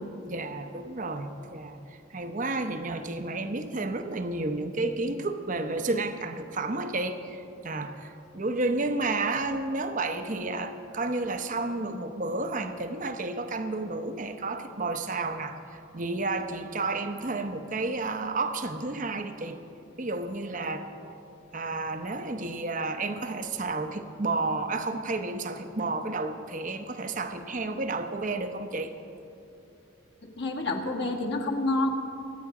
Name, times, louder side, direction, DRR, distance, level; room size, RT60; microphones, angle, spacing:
voice 1, 0.2-19.6 20.0-20.9 21.5-28.9, right 3 dB, 40° right, 8 dB, 0.8 m, -31 dB
voice 2, 30.2-31.9, left 2 dB, 55° left, 1 dB, 1.5 m, -28 dB
24.0 x 9.3 x 4.9 m, 2.7 s
head